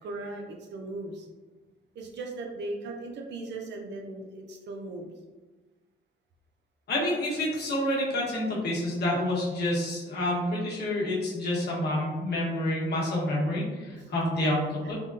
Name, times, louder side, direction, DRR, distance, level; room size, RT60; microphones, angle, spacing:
voice 1, 0.0-1.3 1.9-5.1 13.8-14.9, right 2 dB, 60° right, 2 dB, 0.5 m, -39 dB
voice 2, 6.9-14.9, left 1 dB, 55° left, -5 dB, 1.1 m, -28 dB
3.5 x 2.1 x 2.5 m, 1.2 s
cardioid pair, 90°, 20 cm